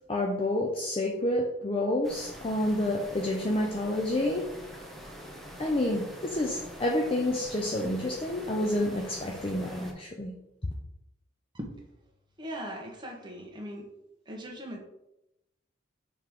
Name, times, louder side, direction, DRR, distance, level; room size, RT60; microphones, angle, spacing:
voice 1, 0.1-4.5 5.6-10.3, left 1 dB, 30° left, 0 dB, 0.6 m, -29 dB
sound 1, 2.0-9.9, equal, ahead, 0.8 m, -45 dB
voice 2, 12.4-13.9 14.3-14.8, equal, 25° right, 0 dB, 1.1 m, -39 dB
5.8 x 3.6 x 4.7 m, 0.87 s
head